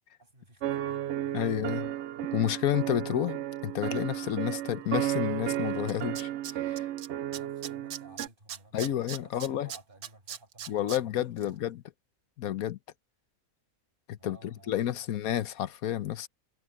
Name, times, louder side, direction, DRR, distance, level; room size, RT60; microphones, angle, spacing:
voice 1, 0.2-1.4 7.3-11.8 14.2-15.1, right 2 dB, 35° right, 7.9 m, -56 dB
Suspenseful Piano Staccato, 0.6-8.3, right 12 dB, 65° right, 0.7 m, -33 dB
voice 2, 1.3-1.9 2.3-6.3 6.6-6.9 8.7-9.7 10.7-11.8 12.4-12.8 14.1-14.4 14.7-16.3, left 11 dB, 75° left, 1.2 m, -30 dB
Tools, 5.5-5.6 5.9-7.1 7.3-11.0 11.4-11.5, right 9 dB, 85° right, 1.5 m, -39 dB
omnidirectional pair, 1.5 m